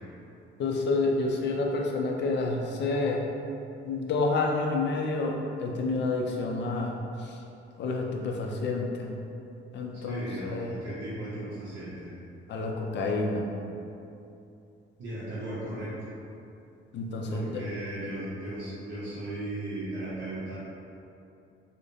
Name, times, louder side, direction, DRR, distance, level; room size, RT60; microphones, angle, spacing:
voice 1, 0.6-3.2 3.8-6.9 7.2-7.3 7.8-9.1 9.7-10.7 12.5-13.4 16.9-17.6, left 3 dB, 60° left, 1 dB, 0.5 m, -29 dB
voice 2, 10.0-12.1 15.0-16.1 17.2-20.5, right 1 dB, 55° right, -11 dB, 0.9 m, -36 dB
4.9 x 2.1 x 2.7 m, 2.7 s
cardioid pair, 90°, 21 cm